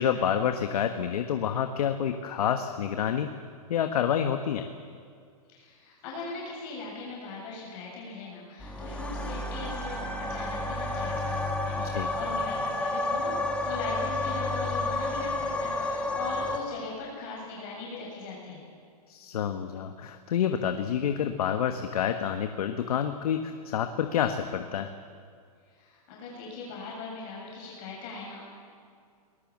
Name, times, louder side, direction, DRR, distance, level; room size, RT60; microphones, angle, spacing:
voice 1, 0.0-3.3 3.7-4.7 11.8-12.1 19.1-24.9, left 8 dB, 65° left, 7 dB, 1.4 m, -28 dB
voice 2, 5.5-18.6 25.7-28.4, left 3 dB, 40° left, -3 dB, 7.0 m, -40 dB
sound 1, 8.6-16.6, left 2 dB, 5° left, 2.0 m, -31 dB
23.5 x 20.0 x 7.4 m, 2.2 s
hypercardioid pair, 140°, 20 cm